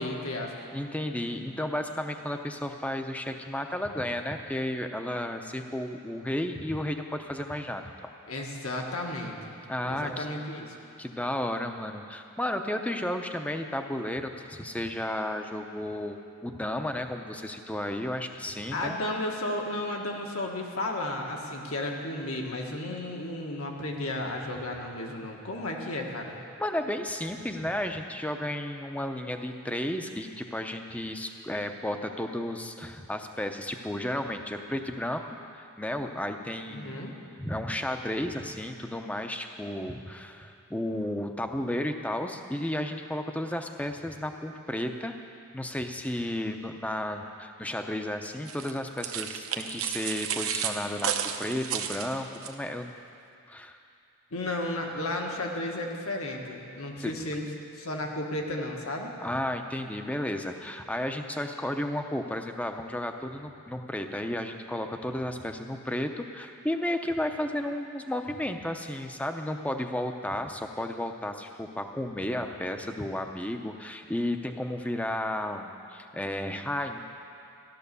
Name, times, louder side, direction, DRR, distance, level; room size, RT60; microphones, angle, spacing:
voice 1, 0.0-0.5 8.3-9.5 9.8-10.7 18.7-26.4 36.7-37.1 54.3-57.4 57.7-59.1, left 1 dB, 75° left, 1 dB, 1.7 m, -33 dB
voice 2, 0.7-8.1 9.7-10.3 11.0-18.9 26.6-35.2 35.5-37.0 37.4-45.2 45.5-51.1 51.4-52.9 53.5-53.8 57.0-57.1 59.2-77.0, left 1 dB, 5° left, 5 dB, 0.6 m, -33 dB
sound 1, 48.5-52.5, right 8 dB, 70° right, 0.9 m, -32 dB
14.5 x 12.0 x 6.9 m, 2.5 s
head